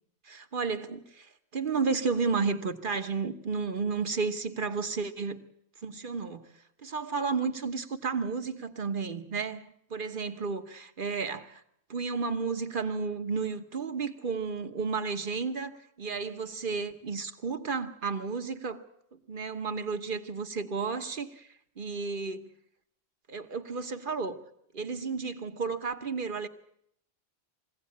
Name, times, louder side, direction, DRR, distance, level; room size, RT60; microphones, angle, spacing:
voice 1, 0.2-5.4 5.8-6.4 6.8-11.6 11.9-18.8 19.3-21.5 21.8-22.5 23.3-24.4 24.7-26.5, right 5 dB, 50° right, 1.3 m, -32 dB
22.5 x 16.5 x 8.6 m
omnidirectional pair, 1.1 m